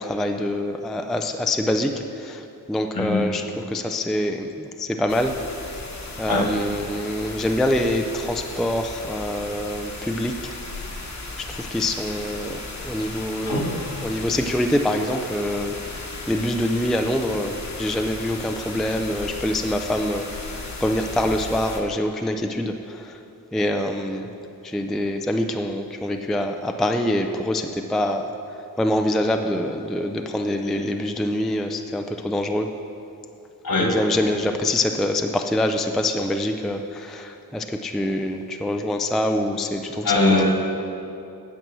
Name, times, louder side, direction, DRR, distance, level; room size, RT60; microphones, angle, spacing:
voice 1, 0.0-5.4 6.2-10.5 11.4-15.8 16.3-23.2 23.5-24.3 24.6-28.3 28.8-32.7 33.8-40.2, left 1 dB, ahead, 5 dB, 0.3 m, -25 dB
sound 1, 5.1-21.8, left 2 dB, 45° left, 1.1 m, -36 dB
voice 2, 13.5-13.8 33.6-33.9 40.0-40.4, left 2 dB, 60° left, 0 dB, 1.8 m, -21 dB
9.1 x 7.4 x 6.1 m, 2.8 s
wide cardioid pair, 125°, 38 cm